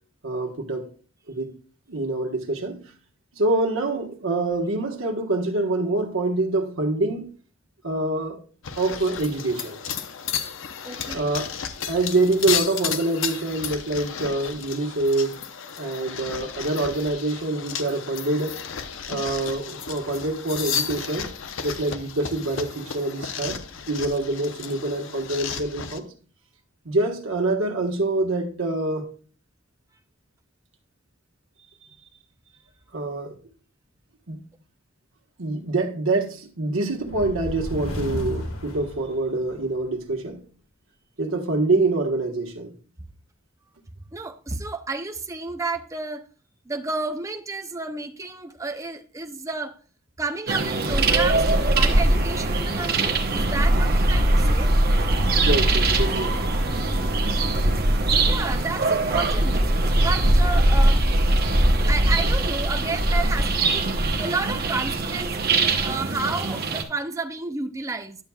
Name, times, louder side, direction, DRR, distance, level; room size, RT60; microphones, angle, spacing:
voice 1, 0.2-0.9 1.3-1.5 1.9-2.8 3.4-7.3 7.8-8.4 8.8-9.8 11.1-11.5 11.9-15.4 15.8-18.5 19.1-21.3 21.6-23.6 23.9-26.1 26.8-29.0 32.9-33.3 34.3-34.4 35.4-40.4 41.2-42.7 55.4-56.5, right 2 dB, 75° right, 1.4 m, -25 dB
sound 1, 8.6-26.0, left 7 dB, 70° left, 0.7 m, -33 dB
voice 2, 10.8-11.3 44.1-46.2 46.7-49.7 50.2-54.7 58.2-59.6 60.0-61.0 61.8-63.9 64.2-68.2, right 3 dB, 15° right, 0.6 m, -31 dB
sound 2, 37.0-39.7, left 1 dB, 85° left, 1.8 m, -33 dB
sound 3, 50.5-66.8, right 2 dB, 50° right, 1.0 m, -21 dB
10.5 x 7.1 x 2.3 m
head